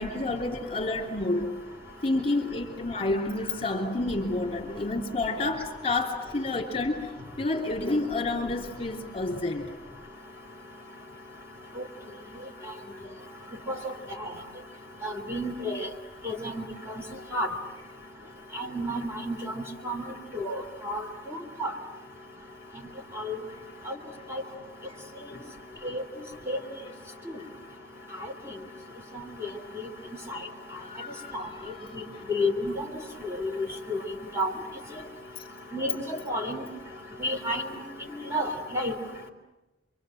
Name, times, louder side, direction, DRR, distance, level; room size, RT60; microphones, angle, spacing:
voice 1, 0.0-1.5 2.0-7.1 7.4-9.7 12.7-12.9 25.3-25.5 25.8-26.0 27.4-27.5 30.8-32.2 35.4-35.5, left 2 dB, 30° left, 3.2 m, -30 dB
voice 2, 15.0-15.9 16.2-16.6 17.3-17.5 18.5-20.0 20.3-21.0 21.3-21.7 23.2-23.4 23.9-24.0 24.3-24.4 25.8-26.0 26.5-26.6 29.4-29.5 31.3-31.5 32.3-32.9 33.2-34.0 34.4-34.5 35.7-36.0 36.3-36.6 37.2-37.6 38.3-38.9, left 1 dB, 15° right, 3.3 m, -30 dB
28.0 x 24.5 x 7.8 m
head